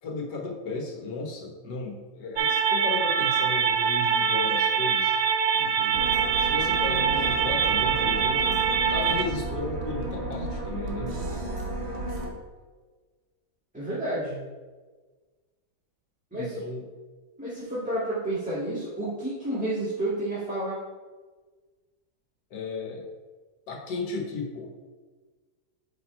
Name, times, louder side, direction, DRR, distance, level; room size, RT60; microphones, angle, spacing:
voice 1, 0.0-5.2 6.4-11.1 16.3-16.9 22.5-23.1 23.7-24.7, left 3 dB, 75° left, 1 dB, 1.8 m, -35 dB
sound 1, 2.4-9.2, right 7 dB, 65° right, 0.9 m, -24 dB
voice 2, 5.6-6.0 13.7-14.4 16.3-16.5 17.4-20.8, right 1 dB, 5° right, -11 dB, 1.7 m, -30 dB
sound 2, 5.9-12.3, right 2 dB, 45° right, 1.3 m, -33 dB
8.9 x 3.6 x 4.3 m, 1.4 s
omnidirectional pair, 1.8 m